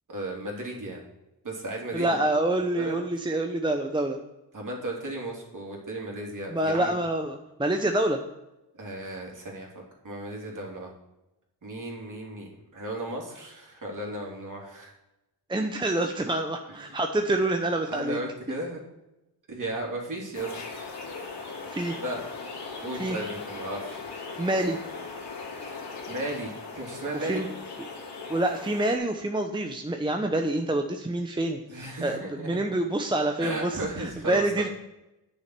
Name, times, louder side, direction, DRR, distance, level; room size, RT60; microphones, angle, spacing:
voice 1, 0.1-1.0 1.4-2.2 2.8-3.0 4.5-6.9 8.8-10.9 11.6-14.9 16.7-16.9 17.8-18.8 19.5-20.5 21.9-22.2 22.8-24.0 25.7-27.4 31.7-32.6 33.4-34.4, right 1 dB, 45° right, -1 dB, 3.2 m, -35 dB
voice 2, 1.9-4.2 6.5-8.2 15.5-18.2 21.7-21.9 23.0-23.2 24.4-24.8 27.1-27.5 28.3-34.7, right 1 dB, 10° right, 4 dB, 0.8 m, -27 dB
sound 1, 20.3-29.0, left 4 dB, 60° left, 3.1 m, -39 dB
8.9 x 6.5 x 6.0 m, 0.94 s
cardioid pair, 75°, 44 cm